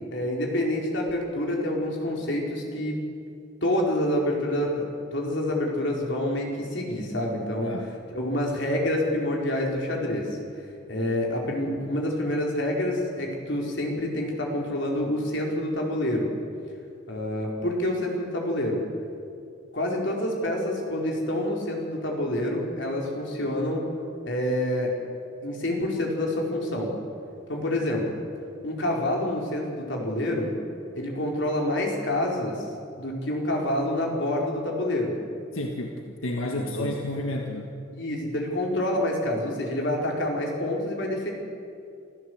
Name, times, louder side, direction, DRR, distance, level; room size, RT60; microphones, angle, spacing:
voice 1, 0.1-3.0 3.6-4.8 5.1-7.8 8.1-10.3 10.9-16.3 17.1-18.8 19.7-23.9 24.2-24.9 25.4-26.9 27.5-28.2 28.6-30.5 30.9-32.7 33.0-35.1 36.5-36.9 37.9-41.3, left 1 dB, 60° left, -1 dB, 4.5 m, -27 dB
voice 2, 35.5-37.7, left 1 dB, 90° left, 2 dB, 1.7 m, -31 dB
26.5 x 14.5 x 7.9 m, 2.5 s
head